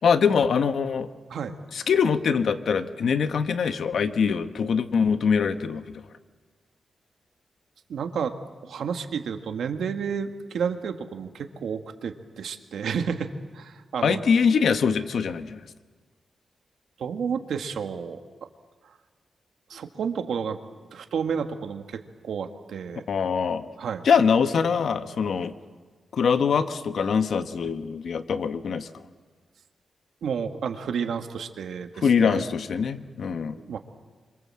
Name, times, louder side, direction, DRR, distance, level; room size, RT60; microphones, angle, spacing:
voice 1, 0.0-1.1 1.7-6.0 14.0-15.6 23.1-23.6 24.0-25.5 26.1-28.9 32.0-33.6, left 6 dB, 70° left, 9 dB, 1.3 m, -23 dB
voice 2, 7.9-8.3 8.6-14.2 17.0-18.2 19.7-20.6 20.9-23.0 23.8-24.0 30.2-32.4 33.6-33.8, right 6 dB, 85° right, 6 dB, 1.8 m, -31 dB
26.5 x 25.5 x 7.7 m, 1.4 s
wide cardioid pair, 115°, 0 cm